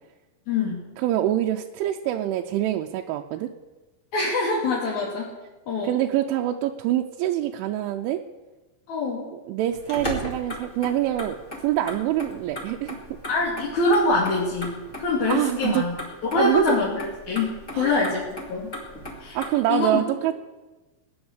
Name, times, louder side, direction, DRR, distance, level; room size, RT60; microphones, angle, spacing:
voice 1, 0.5-0.8 4.1-5.3 5.7-5.9 8.9-9.3 13.3-15.9 16.3-18.7 19.2-19.4 19.7-20.0, left 3 dB, 45° left, -5 dB, 3.0 m, -24 dB
voice 2, 1.0-3.5 5.8-8.2 9.3-11.4 11.6-13.0 15.3-15.9 16.4-16.8 17.7-18.0 19.3-20.4, right 13 dB, 80° right, 2 dB, 2.9 m, -25 dB
Motor vehicle (road), 9.7-19.5, equal, 25° left, 1.9 m, -37 dB
18.5 x 9.6 x 8.0 m, 1.2 s
omnidirectional pair, 5.9 m